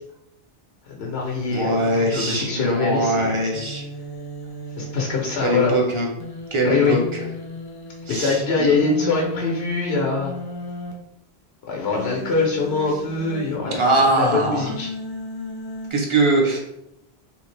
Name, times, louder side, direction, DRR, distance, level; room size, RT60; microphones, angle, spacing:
voice 1, 1.0-3.4 4.8-5.7 6.6-7.0 8.1-10.3 11.7-14.9, left 4 dB, 90° left, -1 dB, 1.0 m, -23 dB
Human voice, 1.2-2.7 3.5-5.6 6.2-8.1 8.8-10.9 12.0-13.6 14.7-15.9, left 1 dB, 35° left, 0.3 m, -35 dB
voice 2, 1.5-3.8 5.4-6.1 6.5-7.2 8.1-8.7 13.6-14.7 15.9-16.6, right 2 dB, 35° right, 0 dB, 0.7 m, -22 dB
3.6 x 2.8 x 3.2 m, 0.83 s
omnidirectional pair, 1.0 m